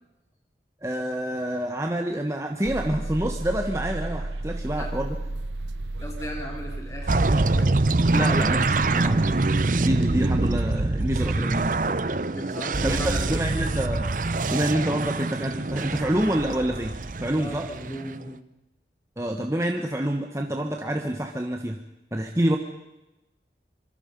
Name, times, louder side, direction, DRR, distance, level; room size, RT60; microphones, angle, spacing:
voice 1, 0.8-5.2 8.1-9.3 9.8-11.7 12.8-14.1 14.5-17.7 19.2-21.8 22.1-22.6, right 1 dB, 15° right, 3 dB, 1.2 m, -27 dB
sound 1, 2.6-9.5, right 2 dB, 85° right, 0.9 m, -34 dB
voice 2, 6.0-7.8 12.3-13.3 17.4-18.3, equal, 15° left, 1 dB, 4.1 m, -37 dB
sound 2, 7.1-18.2, right 2 dB, 45° right, 0.7 m, -25 dB
26.5 x 23.5 x 5.4 m, 0.95 s
head